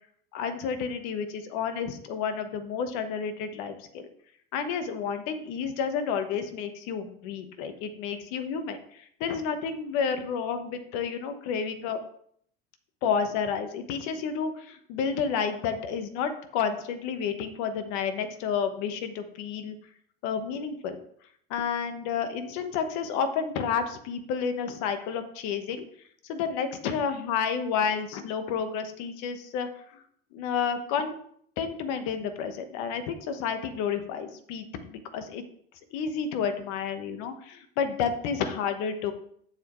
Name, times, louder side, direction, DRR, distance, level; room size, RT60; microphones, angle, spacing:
voice 1, 0.3-4.1 4.5-8.8 9.2-12.0 13.0-19.7 20.2-21.0 21.5-25.8 26.3-29.7 30.3-31.2 31.6-35.4 35.9-39.1, left 6 dB, 70° left, 8 dB, 1.3 m, -30 dB
8.1 x 7.6 x 3.2 m, 0.65 s
supercardioid pair, 90°, 30 cm